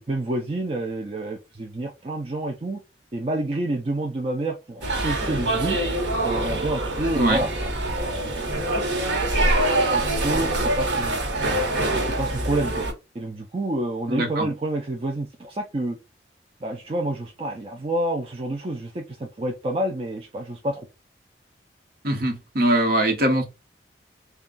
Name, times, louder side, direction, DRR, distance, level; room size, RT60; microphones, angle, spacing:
voice 1, 0.1-2.8 3.1-5.8 6.2-7.5 8.0-11.2 11.8-12.9 13.1-16.0 16.6-20.9, right 1 dB, 35° right, 0.5 m, -29 dB
sound 1, 4.8-12.9, right 1 dB, 80° right, 1.0 m, -24 dB
voice 2, 14.1-14.5 22.0-23.4, right 1 dB, 55° right, 1.0 m, -22 dB
3.4 x 2.3 x 3.8 m
head